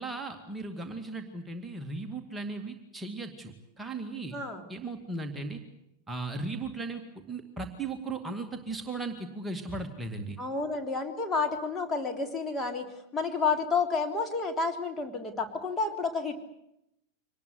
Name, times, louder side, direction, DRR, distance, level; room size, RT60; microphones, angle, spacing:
voice 1, 0.0-4.4 4.7-5.6 6.1-10.4, right 3 dB, 10° right, 3 dB, 2.2 m, -37 dB
voice 2, 4.3-4.7 10.4-12.9 13.1-16.4, left 4 dB, 15° left, 4 dB, 3.3 m, -30 dB
25.0 x 19.0 x 8.2 m, 0.81 s
figure-of-eight pair, 90°, 0 cm